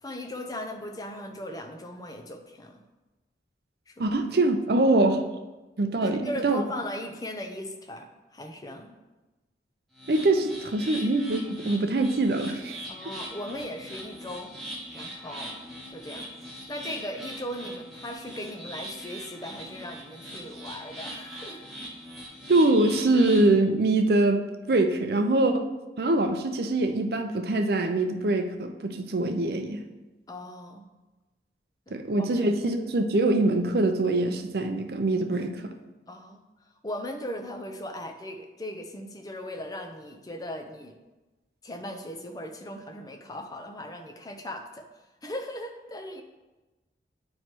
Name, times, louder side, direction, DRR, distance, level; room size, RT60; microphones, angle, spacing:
voice 1, 0.0-2.8 3.9-4.0 6.0-9.0 12.9-14.5 14.9-15.6 15.9-21.6 30.3-30.9 31.9-32.5 36.1-36.4 36.8-41.0 41.6-44.9 45.2-46.2, left 1 dB, 20° left, 4 dB, 0.5 m, -38 dB
voice 2, 4.0-5.2 5.8-6.6 10.1-12.8 22.5-24.4 24.7-25.6 26.0-29.8 31.9-35.7, right 2 dB, 60° right, 7 dB, 0.5 m, -24 dB
sound 1, 9.9-23.5, equal, ahead, 1.3 m, -41 dB
9.2 x 3.2 x 4.4 m, 1.1 s
head